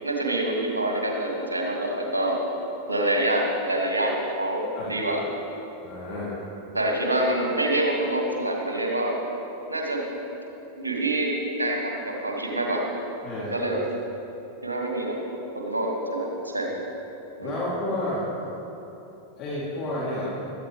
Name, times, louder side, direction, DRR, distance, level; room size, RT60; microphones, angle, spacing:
voice 1, 0.0-2.4 2.9-5.2 6.1-6.3 6.7-9.2 9.7-10.0 10.8-12.9 13.3-13.8 14.6-15.2 15.5-16.7 17.4-17.6, right 1 dB, 80° right, 0 dB, 2.1 m, -26 dB
voice 2, 5.8-6.3 13.2-13.6 17.4-18.2 19.4-20.2, left 1 dB, 35° left, -9 dB, 3.2 m, -30 dB
16.5 x 13.5 x 3.4 m, 3.0 s
figure-of-eight pair, 90°, 0 cm